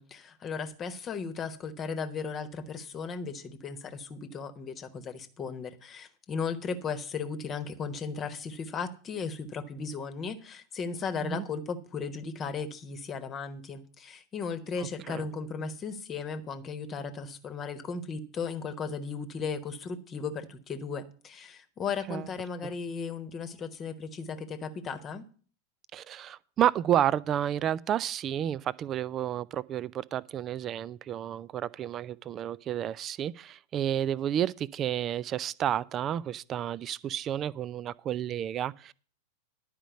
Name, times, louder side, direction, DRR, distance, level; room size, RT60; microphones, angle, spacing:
voice 1, 0.0-25.2, left 5 dB, 25° left, 1.2 m, -36 dB
voice 2, 14.8-15.3 22.1-22.3 22.6-22.7 25.9-38.9, right 10 dB, 30° right, 0.4 m, -31 dB
11.5 x 5.1 x 8.1 m
figure-of-eight pair, 90°, 0 cm